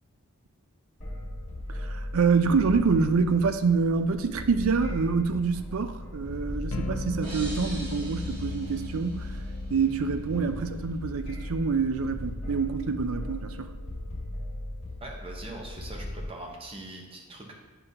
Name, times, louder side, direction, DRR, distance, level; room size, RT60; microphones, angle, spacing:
sound 1, 1.0-16.3, left 1 dB, 30° left, 1.6 m, -38 dB
voice 1, 1.8-9.4 9.7-13.7, right 5 dB, 65° right, 9 dB, 0.4 m, -26 dB
sound 2, 6.7-16.7, left 2 dB, 70° left, 0.5 m, -41 dB
sound 3, 7.2-10.0, right 1 dB, 90° right, 2.4 m, -44 dB
voice 2, 15.0-17.5, right 1 dB, 25° right, 0 dB, 0.9 m, -42 dB
8.6 x 5.4 x 2.8 m, 1.2 s
head